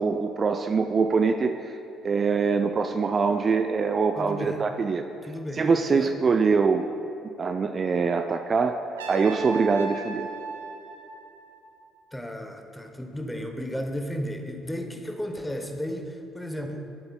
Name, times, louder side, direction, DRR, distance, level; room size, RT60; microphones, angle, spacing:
voice 1, 0.0-1.7 2.0-5.0 5.6-6.8 7.4-8.8 9.1-10.3, right 5 dB, 40° right, 7 dB, 0.3 m, -23 dB
voice 2, 4.2-4.6 5.2-6.1 12.1-16.8, equal, 10° left, 4 dB, 0.8 m, -34 dB
Trumpet, 9.0-12.0, right 4 dB, 80° right, 0.6 m, -37 dB
10.0 x 7.7 x 2.3 m, 2.7 s
figure-of-eight pair, 50°, 0 cm